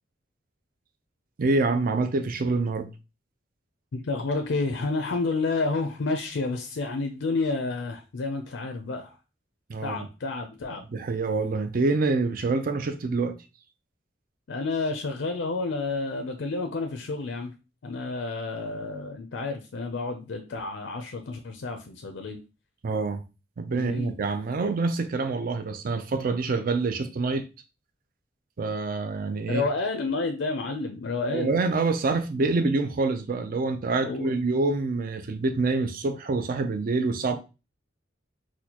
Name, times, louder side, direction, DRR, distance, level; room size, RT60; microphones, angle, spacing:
voice 1, 1.4-2.9 9.7-10.1 10.9-13.4 22.8-23.2 23.6-27.4 28.6-29.7 31.3-37.4, right 3 dB, 50° right, 0.4 m, -26 dB
voice 2, 3.9-9.2 9.8-10.8 14.5-17.5 17.8-22.4 23.8-24.1 29.5-31.6 34.0-34.3, left 3 dB, 70° left, 0.5 m, -30 dB
4.2 x 2.2 x 2.8 m
head